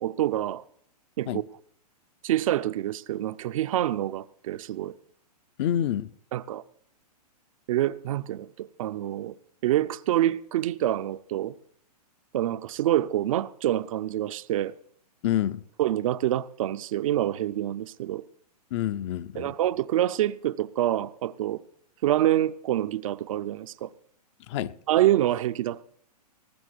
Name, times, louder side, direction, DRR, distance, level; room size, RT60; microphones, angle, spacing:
voice 1, 0.0-0.6 1.2-1.4 2.2-4.9 6.3-6.6 7.7-9.4 9.6-11.6 12.3-14.8 15.8-18.2 19.4-21.6 22.0-23.9 24.9-25.8, right 13 dB, 55° right, 0.6 m, -26 dB
voice 2, 5.6-6.1 15.2-15.6 18.7-19.5 24.5-24.7, left 11 dB, 45° left, 0.7 m, -27 dB
19.0 x 7.5 x 6.3 m
hypercardioid pair, 130°, 21 cm